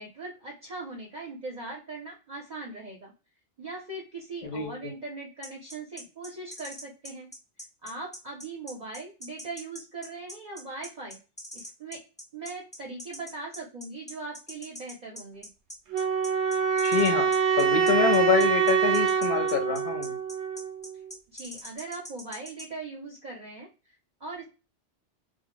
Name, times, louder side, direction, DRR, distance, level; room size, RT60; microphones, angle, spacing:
voice 1, 0.0-3.1 3.6-7.3 7.8-11.2 11.5-12.0 12.3-15.5 21.3-24.4, right 3 dB, 45° right, -1 dB, 0.6 m, -40 dB
sound 1, 5.4-22.7, equal, 10° left, 0.4 m, -43 dB
sound 2, 15.9-20.9, right 7 dB, 75° right, 0.9 m, -25 dB
voice 2, 16.8-17.3 17.6-20.2, left 7 dB, 60° left, 6 dB, 0.7 m, -26 dB
2.3 x 2.0 x 2.9 m, 0.32 s
omnidirectional pair, 1.2 m